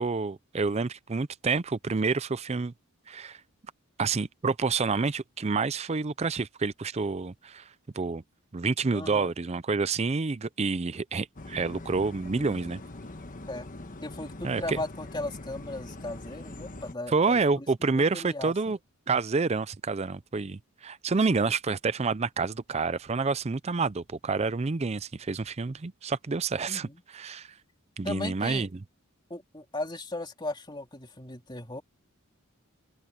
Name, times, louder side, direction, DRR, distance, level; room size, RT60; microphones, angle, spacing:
voice 1, 0.0-2.7 3.1-3.4 4.0-7.7 7.9-8.2 8.5-12.8 14.4-14.8 17.1-18.8 19.1-27.5 28.0-28.7, right 4 dB, 30° right, 0.5 m, -28 dB
voice 2, 8.9-9.3 13.5-13.7 14.0-17.7 17.9-18.7 26.7-27.0 28.0-28.7 29.3-31.8, left 2 dB, 20° left, 2.9 m, -37 dB
sound 1, 11.4-16.9, left 2 dB, 40° left, 1.3 m, -43 dB
open air
head